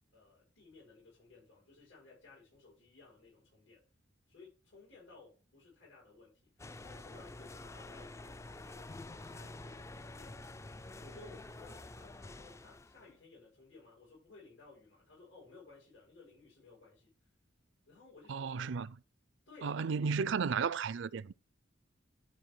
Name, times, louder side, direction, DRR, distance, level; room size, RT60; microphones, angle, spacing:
voice 1, 0.1-3.8 4.3-10.4 11.0-17.3 17.9-18.5 19.5-20.2, left 3 dB, 80° left, 6.3 m, -58 dB
sound 1, 6.6-13.1, left 2 dB, 15° left, 0.3 m, -48 dB
voice 2, 18.3-19.0 19.6-21.3, right 5 dB, 70° right, 0.5 m, -34 dB
12.0 x 4.5 x 4.7 m
head